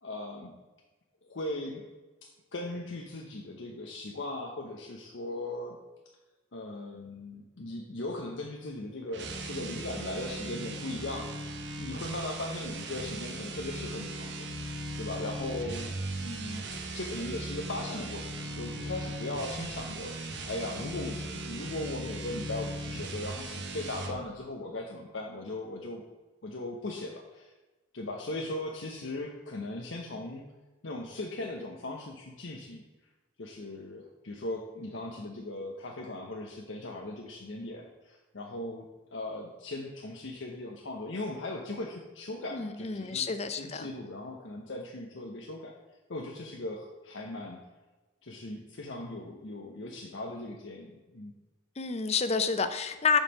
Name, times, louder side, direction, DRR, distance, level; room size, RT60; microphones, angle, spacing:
voice 1, 0.0-0.5 1.2-1.8 2.5-5.8 6.5-11.5 11.8-26.0 26.4-27.5 27.9-30.5 30.8-32.8 33.4-45.8 46.1-47.6 48.2-51.3, left 2 dB, 85° left, 1 dB, 0.9 m, -38 dB
sound 1, 9.1-24.2, right 1 dB, 65° right, 1.0 m, -38 dB
voice 2, 42.5-43.9 51.8-53.2, left 5 dB, 35° left, 10 dB, 0.6 m, -29 dB
7.2 x 5.5 x 5.4 m, 1.2 s
head